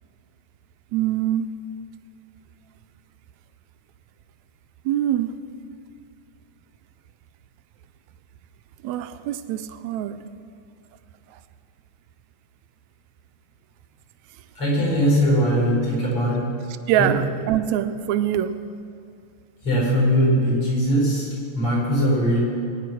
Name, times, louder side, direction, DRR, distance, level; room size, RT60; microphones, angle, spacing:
voice 1, 0.9-1.5 4.8-5.4 8.8-10.2 16.9-18.6, right 11 dB, 80° right, 10 dB, 1.7 m, -24 dB
voice 2, 14.6-16.5 17.0-17.1 19.6-22.4, equal, 45° left, -5 dB, 5.6 m, -20 dB
20.0 x 9.9 x 6.1 m, 2.5 s
omnidirectional pair, 3.5 m